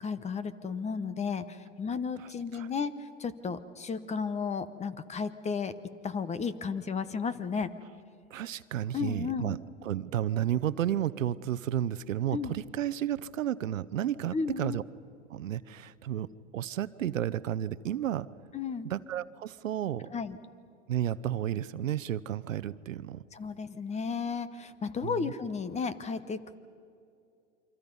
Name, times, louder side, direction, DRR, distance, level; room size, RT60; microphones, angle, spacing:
voice 1, 0.0-5.7 6.0-7.7 8.9-9.6 12.3-12.5 14.3-14.8 18.5-18.9 20.1-20.4 23.3-26.6, left 5 dB, 15° left, 14 dB, 1.0 m, -33 dB
voice 2, 2.2-2.7 8.3-14.8 15.3-18.3 18.8-20.1 20.9-23.2 25.0-25.3, right 11 dB, 85° right, 16 dB, 0.9 m, -32 dB
28.5 x 24.5 x 5.5 m, 2.5 s
hypercardioid pair, 110°, 38 cm